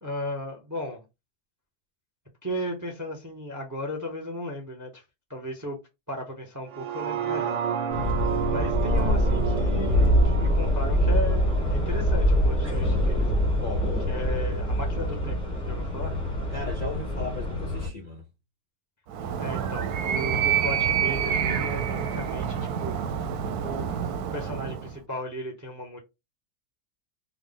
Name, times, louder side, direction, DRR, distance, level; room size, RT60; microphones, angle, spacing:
voice 1, 0.0-1.0 2.4-5.0 5.3-5.8 6.1-7.6 8.5-13.3 14.1-16.1 19.4-23.0 23.6-26.0, left 1 dB, 20° right, 0.5 m, -35 dB
sound 1, 6.7-12.8 13.2-13.3, right 9 dB, 65° right, 0.8 m, -32 dB
sound 2, 7.9-17.9, equal, 5° left, 0.9 m, -24 dB
voice 2, 13.6-14.1 16.5-18.2, left 3 dB, 50° left, 0.6 m, -36 dB
Animal, 19.1-25.0, right 8 dB, 90° right, 1.1 m, -27 dB
3.5 x 2.1 x 3.8 m
omnidirectional pair, 1.6 m